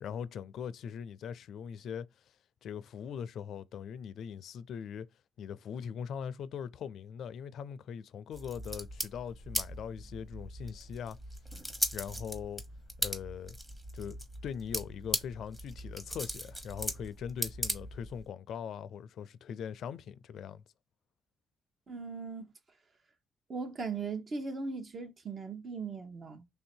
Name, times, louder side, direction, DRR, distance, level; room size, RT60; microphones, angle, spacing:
voice 1, 0.0-2.1 2.6-5.1 5.4-11.2 11.5-11.6 11.9-12.6 13.0-13.6 13.9-20.6, left 8 dB, 70° left, 0.4 m, -41 dB
sound 1, 8.3-18.3, equal, 15° right, 1.2 m, -39 dB
voice 2, 21.9-22.5 23.5-26.5, right 4 dB, 45° right, 0.9 m, -38 dB
3.3 x 2.7 x 4.3 m
cardioid pair, 90°, 0 cm